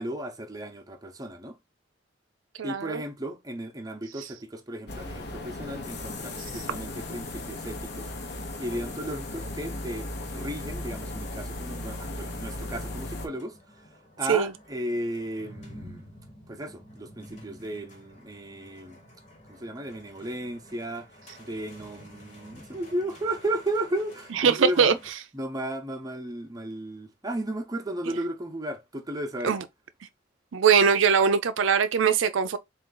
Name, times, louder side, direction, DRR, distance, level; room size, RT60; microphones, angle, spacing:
voice 1, 0.0-1.6 2.6-8.1 8.6-13.9 14.2-16.1 16.5-19.0 19.5-21.1 21.4-25.0 25.3-29.6, right 1 dB, 20° right, 0.7 m, -34 dB
voice 2, 2.6-3.0 14.3-14.5 24.4-24.9 29.4-29.6 30.5-32.6, right 6 dB, 90° right, 0.5 m, -21 dB
sound 1, 4.9-13.3, left 2 dB, 55° left, 0.8 m, -36 dB
sound 2, 12.9-25.1, equal, 40° left, 1.1 m, -50 dB
3.7 x 2.5 x 3.8 m
head